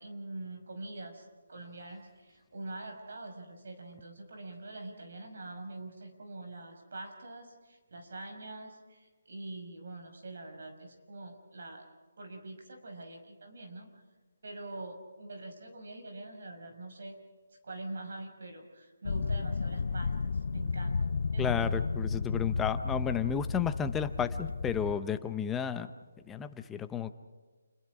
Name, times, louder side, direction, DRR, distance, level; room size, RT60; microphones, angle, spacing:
voice 1, 0.0-11.8 12.2-13.9 14.4-17.2 17.6-21.8, right 2 dB, 60° right, 4 dB, 5.9 m, -44 dB
sound 1, 19.1-25.0, left 4 dB, 60° left, 0.7 m, -33 dB
voice 2, 21.4-25.9 26.3-27.1, left 7 dB, 5° left, 10 dB, 0.7 m, -32 dB
29.0 x 21.5 x 4.9 m, 1.3 s
hypercardioid pair, 170°, 0 cm